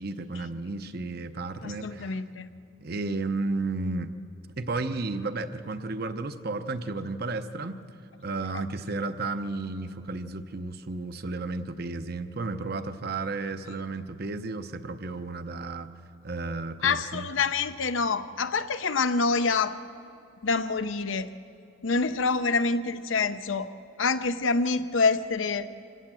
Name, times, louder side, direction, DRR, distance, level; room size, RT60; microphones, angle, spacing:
voice 1, 0.0-2.2 2.8-4.1 4.6-7.8 8.2-15.9 16.2-17.3, right 3 dB, 50° right, 9 dB, 0.8 m, -33 dB
voice 2, 1.6-2.5 16.8-19.7 20.4-21.3 21.8-23.7 24.0-25.7, left 4 dB, 75° left, 11 dB, 0.7 m, -26 dB
25.0 x 17.0 x 7.5 m, 2.6 s
head